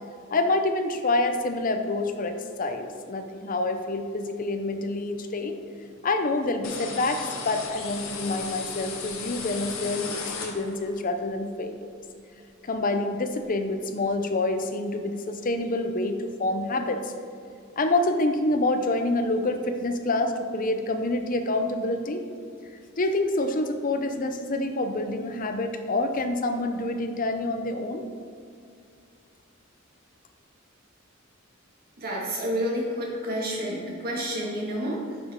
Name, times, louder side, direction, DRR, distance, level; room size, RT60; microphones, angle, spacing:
voice 1, 0.3-5.6 6.0-11.9 12.6-17.1 17.8-22.2 23.0-28.1, left 2 dB, 40° left, 6 dB, 0.6 m, -27 dB
sound 1, 6.6-11.0, left 5 dB, 80° left, 1.0 m, -36 dB
voice 2, 32.0-35.0, equal, 50° right, -3 dB, 1.9 m, -29 dB
9.7 x 5.3 x 3.7 m, 2.4 s
head